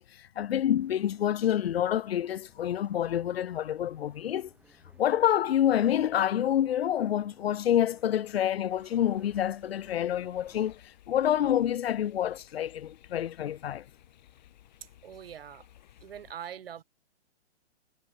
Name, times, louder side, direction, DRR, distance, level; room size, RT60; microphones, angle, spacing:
voice 1, 0.0-4.5 5.0-10.8 11.1-13.8, left 10 dB, 60° left, 0.7 m, -27 dB
sound 1, 0.7-10.7, right 3 dB, 5° right, 4.6 m, -62 dB
sound 2, 8.7-16.3, left 12 dB, 40° left, 7.5 m, -57 dB
voice 2, 15.0-15.7 16.0-16.8, right 9 dB, 55° right, 3.3 m, -42 dB
hypercardioid pair, 170°, 34 cm